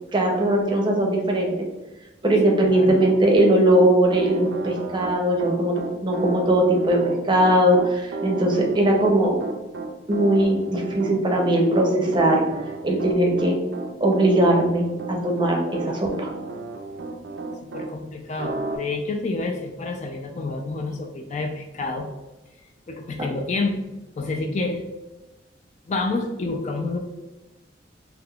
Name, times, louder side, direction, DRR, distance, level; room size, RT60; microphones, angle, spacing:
voice 1, 0.1-1.6 2.2-9.3 10.1-12.4 12.8-13.6 14.0-16.3, right 1 dB, 25° right, 0 dB, 0.6 m, -20 dB
voice 2, 2.4-3.0 17.6-22.1 22.9-23.8 24.2-24.8 25.9-27.0, left 3 dB, 40° left, 4 dB, 0.3 m, -28 dB
Piano, 2.7-17.9 18.4-18.8, right 3 dB, 70° right, 0.4 m, -33 dB
3.4 x 2.9 x 2.3 m, 1.1 s
head